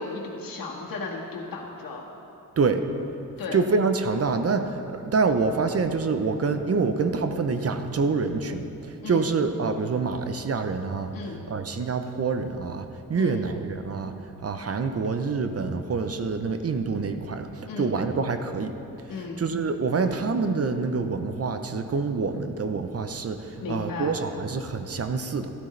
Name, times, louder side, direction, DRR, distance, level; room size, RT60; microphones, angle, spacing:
voice 1, 0.0-2.0 3.4-3.6 9.0-9.3 11.1-11.4 13.1-13.4 17.7-17.9 19.1-19.4 23.6-24.1, left 3 dB, 75° left, -2 dB, 1.8 m, -34 dB
voice 2, 3.5-11.2 11.5-14.1 14.4-18.8 19.4-25.5, right 4 dB, 45° right, 8 dB, 0.7 m, -26 dB
13.0 x 12.0 x 3.3 m, 2.8 s
cardioid pair, 80°, 34 cm